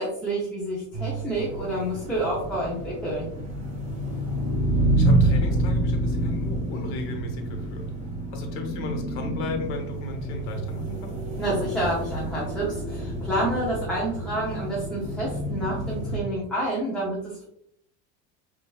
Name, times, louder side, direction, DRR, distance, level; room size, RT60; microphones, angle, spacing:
voice 1, 0.0-3.3 11.4-17.4, right 1 dB, 5° left, -7 dB, 0.7 m, -29 dB
sound 1, 0.9-16.2, right 1 dB, 20° right, 1.2 m, -28 dB
voice 2, 4.0-4.4 5.0-7.9 8.3-11.2, left 2 dB, 65° left, 3 dB, 1.2 m, -35 dB
6.3 x 2.6 x 2.3 m, 0.73 s
cardioid pair, 175°, 35 cm